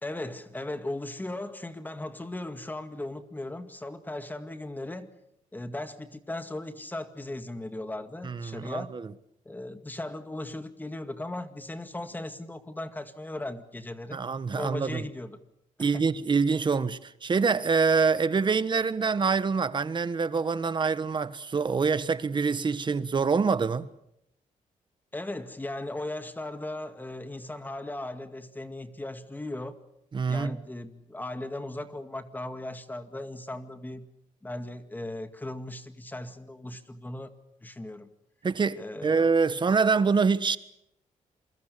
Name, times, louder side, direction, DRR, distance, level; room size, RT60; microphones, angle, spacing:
voice 1, 0.0-5.1 5.5-8.9 9.5-14.2 14.6-15.4 15.8-16.0 25.1-29.8 30.3-34.1 34.4-37.3 37.6-38.1 38.8-39.2, left 1 dB, 15° left, 2.0 m, -37 dB
voice 2, 8.2-9.1 14.1-15.0 15.8-23.9 30.1-30.5 38.4-40.6, right 5 dB, 35° right, 1.3 m, -25 dB
28.0 x 22.5 x 6.8 m
cardioid pair, 115°, 13 cm